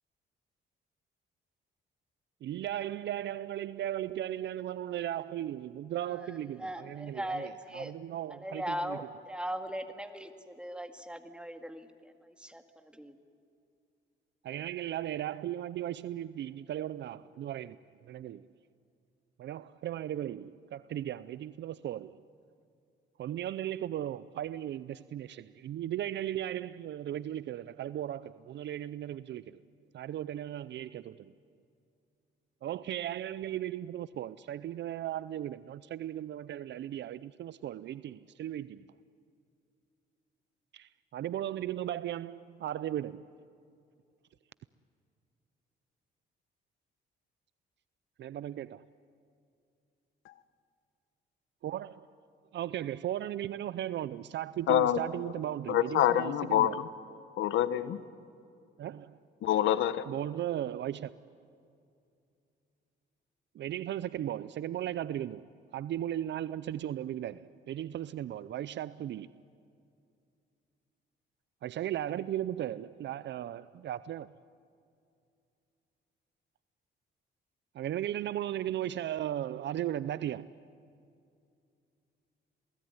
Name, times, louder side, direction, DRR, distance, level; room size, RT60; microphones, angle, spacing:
voice 1, 2.4-9.0 14.4-17.8 18.0-18.5 19.4-22.2 23.2-29.6 29.9-31.3 32.6-38.9 40.7-43.2 48.2-48.8 51.6-51.9 52.5-56.8 58.8-59.2 60.0-61.2 63.5-69.3 71.6-74.3 77.7-80.5, right 12 dB, 65° right, 0.6 m, -36 dB
voice 2, 6.1-7.9 8.3-13.2, equal, 5° right, 2.0 m, -39 dB
voice 3, 54.7-55.0 55.7-56.9 57.4-58.0 59.4-60.0, left 12 dB, 80° left, 1.1 m, -26 dB
27.5 x 19.0 x 9.6 m
cardioid pair, 90°, 20 cm